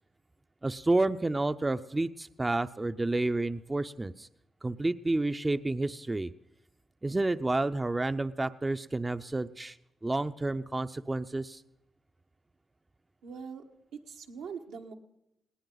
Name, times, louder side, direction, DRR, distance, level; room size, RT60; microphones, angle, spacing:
voice 1, 0.6-4.3 4.6-6.3 7.0-9.8 10.0-11.6, right 2 dB, 25° right, 10 dB, 0.6 m, -30 dB
voice 2, 13.2-13.6 14.1-14.9, right 6 dB, 85° right, 2 dB, 1.5 m, -42 dB
19.5 x 18.0 x 4.0 m, 0.85 s
supercardioid pair, 55°, 0 cm